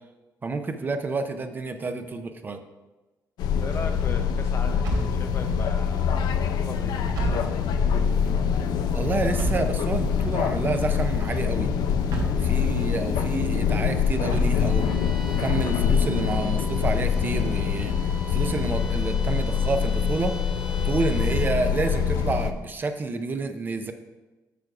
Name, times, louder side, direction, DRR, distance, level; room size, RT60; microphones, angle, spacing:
voice 1, 0.4-2.6 8.9-11.7 12.3-14.9 15.2-20.3 20.8-23.9, right 3 dB, 30° right, 7 dB, 0.5 m, -29 dB
sound 1, 3.4-22.5, left 7 dB, 80° left, 0.6 m, -25 dB
voice 2, 3.6-7.7 12.4-12.7, left 4 dB, 40° left, 7 dB, 0.7 m, -38 dB
sound 2, 4.8-5.8 7.1-8.1 9.4-10.3 12.1-13.0 14.3-15.1, right 2 dB, 80° right, 1.5 m, -31 dB
Bowed string instrument, 14.7-21.7, left 1 dB, 15° right, 1.1 m, -42 dB
6.9 x 6.2 x 4.7 m, 1.1 s
cardioid pair, 135°, 7 cm